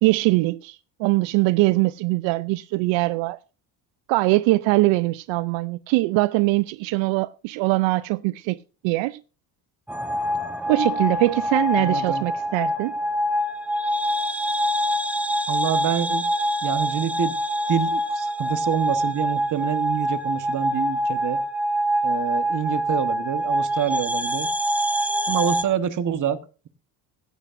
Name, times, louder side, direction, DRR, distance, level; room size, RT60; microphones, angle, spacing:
voice 1, 0.0-3.4 4.1-9.2 10.7-12.9, right 21 dB, 75° right, 0.5 m, -22 dB
sound 1, 9.9-25.6, equal, 5° right, 1.0 m, -25 dB
voice 2, 11.8-12.3 15.5-16.2 16.6-17.3 17.7-21.4 22.0-24.5 25.3-26.4, right 9 dB, 40° right, 1.1 m, -27 dB
16.0 x 12.0 x 2.5 m
cardioid pair, 95°, 45 cm